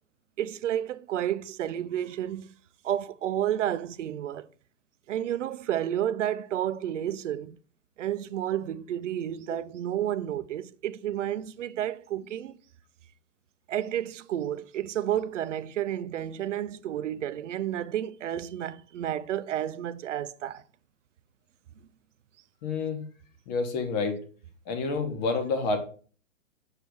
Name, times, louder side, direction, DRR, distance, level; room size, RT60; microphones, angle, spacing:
voice 1, 0.4-2.5 2.8-4.5 5.1-7.6 8.0-12.5 13.7-20.6, right 11 dB, 65° right, 0.5 m, -31 dB
voice 2, 22.6-23.0 23.5-24.2 24.7-25.8, left 4 dB, 35° left, 1.3 m, -28 dB
6.7 x 3.0 x 5.2 m
hypercardioid pair, 140°, 39 cm